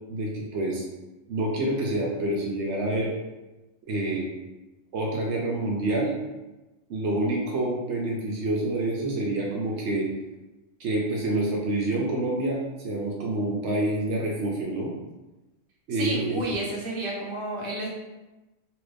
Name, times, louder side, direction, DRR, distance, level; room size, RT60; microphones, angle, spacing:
voice 1, 0.1-0.8 1.3-3.1 3.9-4.3 4.9-6.1 6.9-10.1 10.8-14.9 15.9-16.4, right 1 dB, 70° right, -2 dB, 0.8 m, -27 dB
voice 2, 15.9-17.9, right 2 dB, 30° right, -4 dB, 0.6 m, -31 dB
2.9 x 2.5 x 3.3 m, 1.1 s
omnidirectional pair, 1.3 m